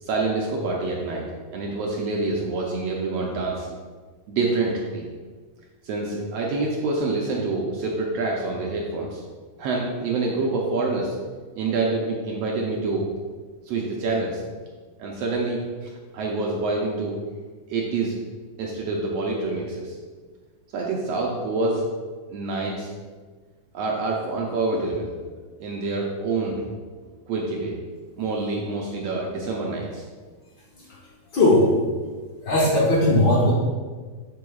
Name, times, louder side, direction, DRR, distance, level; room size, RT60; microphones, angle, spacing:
voice 1, 0.0-1.2 1.5-3.7 4.3-5.1 5.8-9.2 9.6-11.1 11.6-13.0 13.6-14.4 15.0-17.1 17.7-18.1 18.6-20.0 20.7-21.9 22.3-22.9 23.7-25.3 25.6-26.7 27.3-27.7 28.2-30.0, right 3 dB, 75° right, -2 dB, 1.6 m, -26 dB
voice 2, 31.3-31.7 32.4-33.5, left 1 dB, 85° left, -4 dB, 0.9 m, -18 dB
7.6 x 6.9 x 2.3 m, 1.5 s
omnidirectional pair, 3.5 m